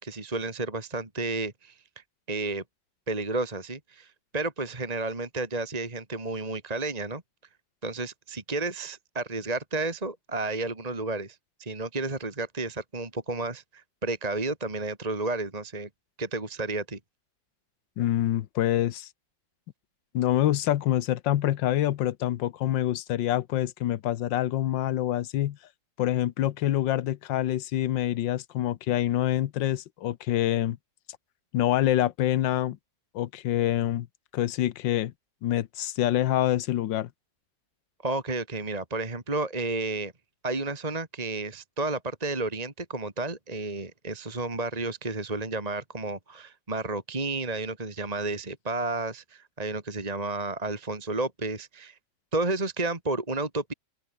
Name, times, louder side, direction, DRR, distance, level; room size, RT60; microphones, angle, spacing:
voice 1, 0.0-2.6 3.1-7.2 7.8-15.9 16.2-17.0 38.0-40.1 40.4-52.0 52.3-53.7, right 2 dB, 20° right, 2.5 m, -32 dB
voice 2, 18.0-19.1 20.1-25.6 26.0-30.8 31.5-32.8 33.1-34.1 34.3-35.1 35.4-37.1, left 13 dB, 90° left, 1.5 m, -26 dB
open air
omnidirectional pair, 1.9 m